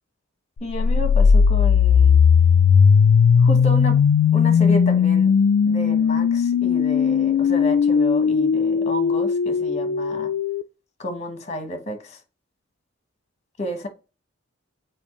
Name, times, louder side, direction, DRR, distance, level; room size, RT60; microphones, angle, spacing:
voice 1, 0.6-2.2 3.4-4.0 4.3-5.3 5.7-10.3 11.0-12.2 13.6-13.9, equal, 35° left, 1.2 m, -31 dB
sound 1, 0.7-10.6, left 6 dB, 75° left, 0.3 m, -17 dB
7.0 x 4.6 x 3.0 m
head